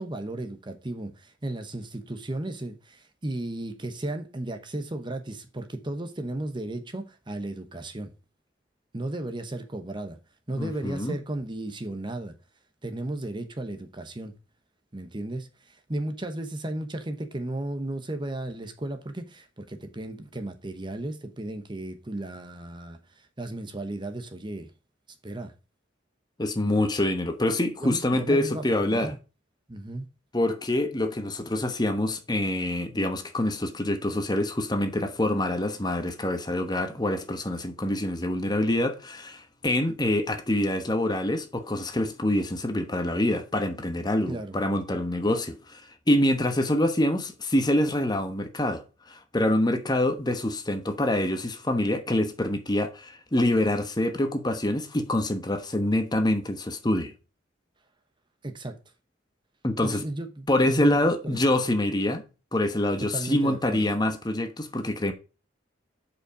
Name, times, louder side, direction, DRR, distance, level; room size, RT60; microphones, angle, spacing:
voice 1, 0.0-8.1 8.9-10.2 10.5-12.3 12.8-14.3 14.9-24.7 25.2-25.5 27.8-29.2 29.7-30.1 44.3-44.6 58.4-58.8 59.8-61.0 61.2-61.4 63.0-63.9, right 1 dB, 25° right, 0.9 m, -34 dB
voice 2, 10.5-11.2 26.4-29.1 30.3-45.8 46.1-48.8 49.1-57.1 59.6-60.0 60.5-62.2 62.5-65.1, left 1 dB, 20° left, 1.1 m, -26 dB
7.5 x 5.4 x 4.9 m
head